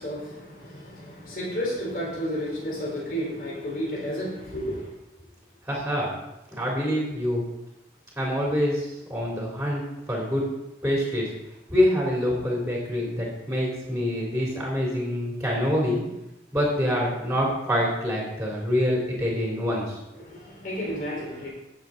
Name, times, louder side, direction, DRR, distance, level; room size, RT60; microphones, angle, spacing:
voice 1, 0.0-4.9 20.2-21.5, equal, 50° left, -5 dB, 4.4 m, -32 dB
voice 2, 5.7-6.2 6.5-7.4 8.1-10.5 10.8-11.3 11.7-16.0 16.5-20.0, equal, 5° right, -4 dB, 3.1 m, -26 dB
16.5 x 7.3 x 4.0 m, 0.91 s
head